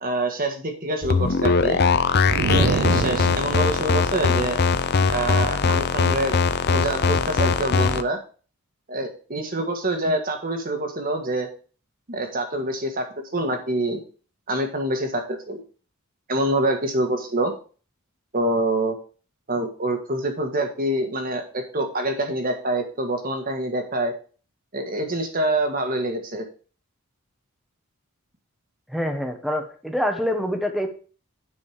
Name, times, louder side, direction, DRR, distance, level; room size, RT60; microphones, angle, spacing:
voice 1, 0.0-1.8 2.5-4.6 5.1-6.3 6.7-8.2 8.9-11.5 12.1-13.1 13.3-14.0 14.5-15.6 16.3-17.5 18.3-19.0 19.5-24.1 24.7-26.4, right 1 dB, 40° right, 5 dB, 1.6 m, -26 dB
sound 1, 1.0-8.0, left 5 dB, 45° left, 0.6 m, -21 dB
sound 2, 2.2-3.8, right 5 dB, 55° right, 0.4 m, -25 dB
voice 2, 28.9-30.9, equal, ahead, 5 dB, 1.2 m, -25 dB
10.0 x 5.2 x 5.0 m, 0.39 s
head